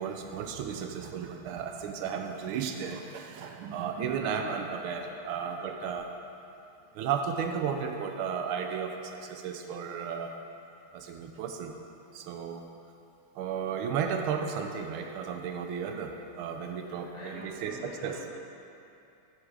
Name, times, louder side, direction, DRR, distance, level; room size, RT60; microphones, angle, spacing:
voice 1, 0.0-6.1 6.9-10.3 10.9-11.7 12.1-12.6 13.3-18.2, right 7 dB, 80° right, 4 dB, 1.5 m, -34 dB
voice 2, 16.8-18.3, left 2 dB, 50° left, -5 dB, 1.7 m, -46 dB
7.7 x 4.9 x 6.4 m, 2.7 s
omnidirectional pair, 2.4 m